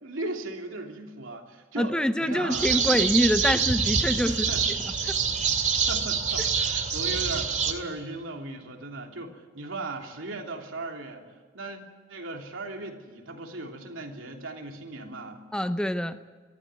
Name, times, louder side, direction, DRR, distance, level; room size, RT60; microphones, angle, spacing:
voice 1, 0.0-2.7 4.3-4.7 5.7-11.2 11.5-11.8 12.1-15.4, right 2 dB, 85° right, 2 dB, 3.1 m, -37 dB
voice 2, 1.8-4.5 5.1-5.2 15.5-16.2, equal, 5° left, 10 dB, 0.7 m, -25 dB
sound 1, 2.5-7.7, right 6 dB, 40° right, 2.2 m, -26 dB
22.5 x 14.0 x 9.9 m, 1.5 s
head